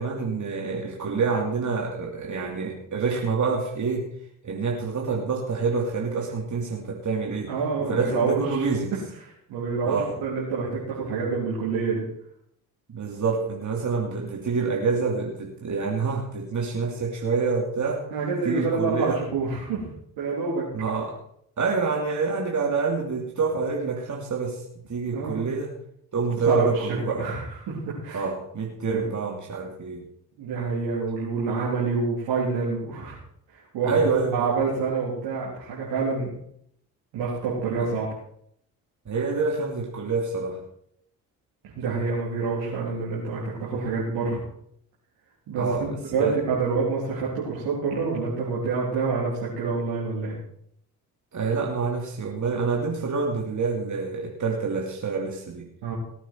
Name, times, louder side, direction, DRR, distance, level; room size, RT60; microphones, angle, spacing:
voice 1, 0.0-4.1 4.4-7.5 7.8-8.9 9.8-10.1 12.9-18.0 18.4-19.2 20.7-21.2 21.6-24.6 24.9-25.7 26.1-27.2 28.1-30.0 33.9-34.5 39.1-40.6 45.6-46.4 51.3-55.7, right 4 dB, 45° right, -1 dB, 2.9 m, -27 dB
voice 2, 7.5-8.7 9.5-12.0 18.1-19.9 20.2-20.7 25.1-25.4 26.5-26.9 27.2-28.2 28.9-29.0 30.4-33.2 33.7-34.0 34.3-36.3 37.1-38.1 41.8-44.4 45.5-45.6 46.1-50.3 55.8-55.9, right 4 dB, 80° right, -7 dB, 4.0 m, -27 dB
18.5 x 9.1 x 4.7 m, 0.69 s
hypercardioid pair, 50°, 42 cm